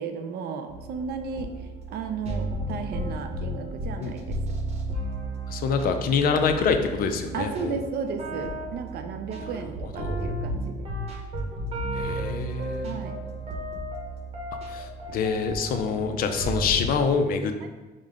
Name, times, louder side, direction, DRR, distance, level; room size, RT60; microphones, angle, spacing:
voice 1, 0.0-1.5 1.9-4.4 7.3-10.9 12.8-13.2 17.6-17.7, right 6 dB, 70° right, 6 dB, 0.5 m, -34 dB
sound 1, 0.7-16.9, right 1 dB, 40° right, 0.8 m, -33 dB
voice 2, 5.5-7.8 9.4-9.5 9.8-10.3 11.9-12.9 14.7-17.7, left 5 dB, 60° left, 7 dB, 0.4 m, -26 dB
5.0 x 2.1 x 3.6 m, 1.2 s
cardioid pair, 110°, 17 cm